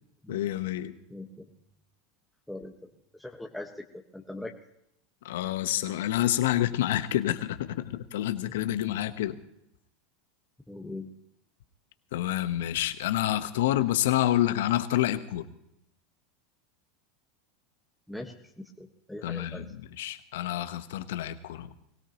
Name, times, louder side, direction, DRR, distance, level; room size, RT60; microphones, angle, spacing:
voice 1, 0.3-0.9 5.2-9.4 12.1-15.5 19.2-19.6 20.0-21.7, left 13 dB, 75° left, 11 dB, 1.1 m, -28 dB
voice 2, 1.1-1.4 2.5-2.9 3.2-4.5 10.7-11.1 18.1-19.6, left 1 dB, 5° left, 0 dB, 1.4 m, -41 dB
23.0 x 17.0 x 3.0 m, 0.78 s
hypercardioid pair, 95°, 0 cm